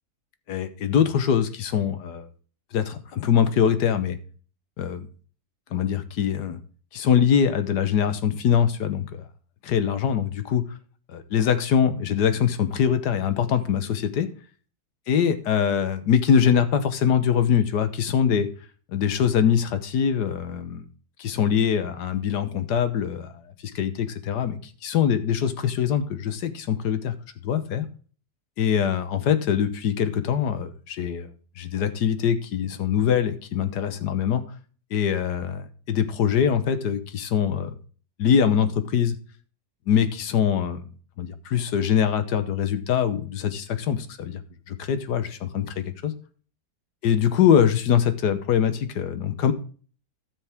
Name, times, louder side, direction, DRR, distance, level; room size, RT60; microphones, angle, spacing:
voice 1, 0.5-2.3 2.7-4.2 4.8-5.1 5.7-6.6 6.9-9.2 9.6-10.6 11.1-14.3 15.1-18.5 18.9-20.8 21.2-23.3 23.7-27.1 27.4-27.9 28.6-31.3 31.6-34.4 34.9-37.7 38.2-39.2 39.9-40.9 41.2-44.4 44.7-46.1 47.0-49.5, left 8 dB, 85° left, 11 dB, 1.6 m, -23 dB
12.5 x 7.4 x 3.5 m, 0.40 s
omnidirectional pair, 1.7 m